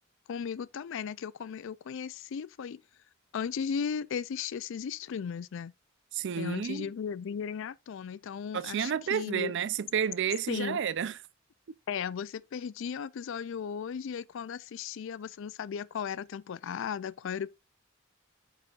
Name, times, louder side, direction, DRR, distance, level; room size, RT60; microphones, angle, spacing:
voice 1, 0.3-2.8 3.3-5.7 6.4-9.5 10.5-10.8 11.9-17.5, left 7 dB, 65° left, 0.4 m, -36 dB
voice 2, 6.1-6.9 8.5-11.2, right 7 dB, 60° right, 0.4 m, -31 dB
8.8 x 5.0 x 2.4 m
head